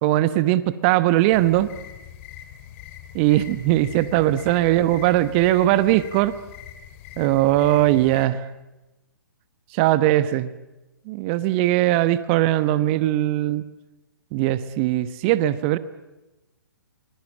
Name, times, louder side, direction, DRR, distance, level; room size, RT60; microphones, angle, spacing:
voice 1, 0.0-1.7 3.1-6.3 7.2-8.4 9.7-10.5 11.1-13.6 14.3-15.8, right 15 dB, 30° right, 14 dB, 1.1 m, -20 dB
sound 1, 1.3-8.3, left 10 dB, 35° left, 2.7 m, -42 dB
24.5 x 23.0 x 8.7 m, 1.0 s
figure-of-eight pair, 125°, 12 cm